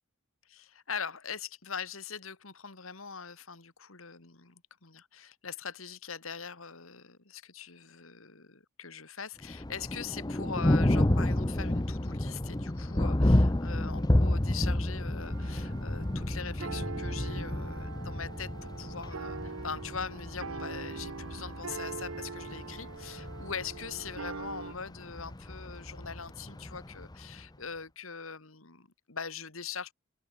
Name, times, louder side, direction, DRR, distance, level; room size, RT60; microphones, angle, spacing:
voice 1, 0.5-29.9, left 6 dB, 75° left, 2.3 m, -42 dB
Thunder, 9.4-27.4, left 1 dB, 20° left, 0.9 m, -30 dB
sound 1, 15.2-24.7, right 4 dB, 75° right, 0.8 m, -43 dB
head